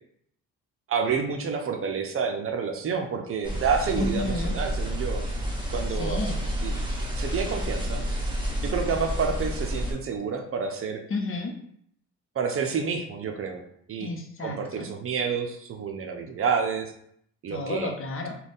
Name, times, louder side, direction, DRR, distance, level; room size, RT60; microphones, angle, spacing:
voice 1, 0.9-5.2 5.7-6.2 6.6-6.9 7.2-8.0 8.6-11.0 12.3-13.6 13.9-14.1 14.4-16.9 17.4-17.9, right 5 dB, 45° right, 4 dB, 0.6 m, -29 dB
sound 1, 3.4-9.9, equal, 15° right, 1.0 m, -29 dB
voice 2, 4.0-4.5 6.0-6.4 11.1-11.5 14.0-14.9 17.5-18.4, left 2 dB, 45° left, 3 dB, 0.7 m, -31 dB
3.9 x 2.3 x 3.5 m, 0.68 s
cardioid pair, 90°, 30 cm